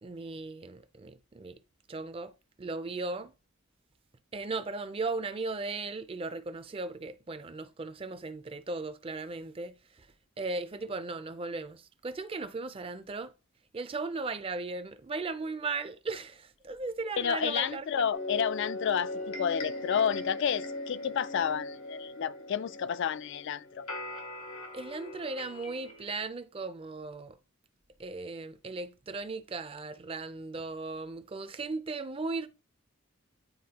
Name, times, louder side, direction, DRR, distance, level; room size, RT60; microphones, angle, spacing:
voice 1, 0.0-1.6 1.9-2.3 2.6-3.3 4.3-9.8 10.4-13.3 13.7-18.1 24.7-27.4 28.0-32.5, right 3 dB, 25° right, 0.4 m, -37 dB
voice 2, 17.2-23.8, left 8 dB, 55° left, 0.3 m, -30 dB
sound 1, 18.1-26.2, left 2 dB, 85° left, 1.4 m, -39 dB
9.5 x 4.1 x 2.8 m
head